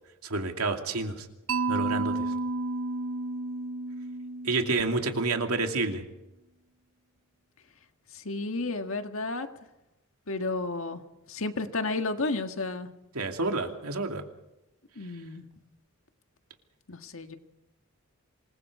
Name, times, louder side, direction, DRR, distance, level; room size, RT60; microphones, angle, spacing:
voice 1, 0.2-1.3 1.7-2.2 4.4-6.0 13.1-14.2, right 3 dB, 85° right, 4 dB, 2.6 m, -29 dB
Mallet percussion, 1.5-5.5, right 3 dB, 65° right, 1.1 m, -32 dB
voice 2, 8.1-9.5 10.3-11.0 11.3-12.9 14.9-15.4 16.9-17.4, left 3 dB, 65° left, 6 dB, 1.7 m, -32 dB
26.5 x 21.0 x 4.9 m, 0.93 s
head